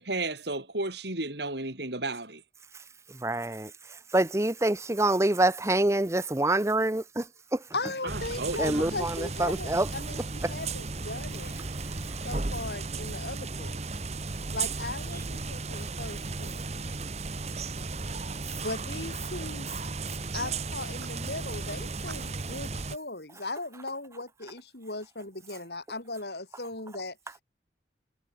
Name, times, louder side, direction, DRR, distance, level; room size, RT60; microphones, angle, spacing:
voice 1, 0.0-2.4 8.0-9.0, right 2 dB, 70° right, 5.5 m, -33 dB
voice 2, 3.2-3.7 4.1-7.2 7.5-7.6 8.6-9.9 10.4-10.5, right 1 dB, 15° right, 0.7 m, -26 dB
voice 3, 7.7-11.6 12.2-13.8 14.5-16.6 18.6-19.7 20.3-27.2, left 2 dB, 65° left, 4.5 m, -38 dB
sound 1, 8.1-23.0, right 3 dB, 35° right, 1.1 m, -35 dB
head